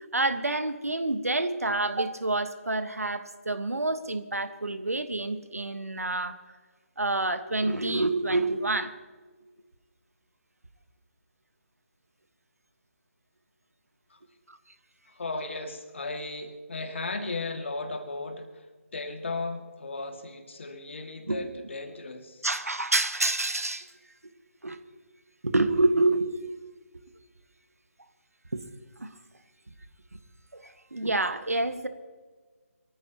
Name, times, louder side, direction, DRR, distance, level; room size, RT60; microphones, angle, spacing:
voice 1, 0.1-6.3 7.0-8.9 21.3-21.4 22.4-23.9 24.6-24.8 25.4-26.3 28.5-28.6 29.0-29.1 30.5-31.9, right 2 dB, 75° right, 10 dB, 1.5 m, -27 dB
voice 2, 15.1-18.6 18.9-22.5, left 3 dB, 50° left, 5 dB, 2.3 m, -36 dB
24.0 x 14.5 x 3.0 m, 1.4 s
figure-of-eight pair, 150°, 8 cm